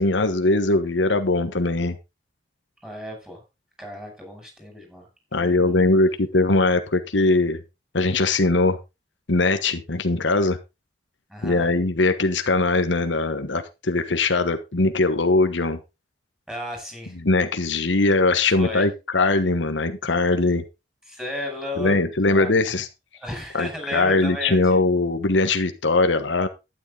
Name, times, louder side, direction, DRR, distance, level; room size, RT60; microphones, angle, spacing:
voice 1, 0.0-2.0 5.3-7.6 7.9-8.8 9.3-10.6 11.4-15.8 17.2-20.6 21.8-22.9 23.5-26.5, left 2 dB, 75° left, 8 dB, 1.2 m, -21 dB
voice 2, 2.8-3.4 3.8-5.1 5.4-5.8 11.3-11.6 16.5-17.2 18.5-18.9 21.1-22.0 22.2-22.7 23.2-24.8, equal, 5° right, 1 dB, 6.0 m, -34 dB
12.0 x 10.0 x 3.8 m, 0.26 s
head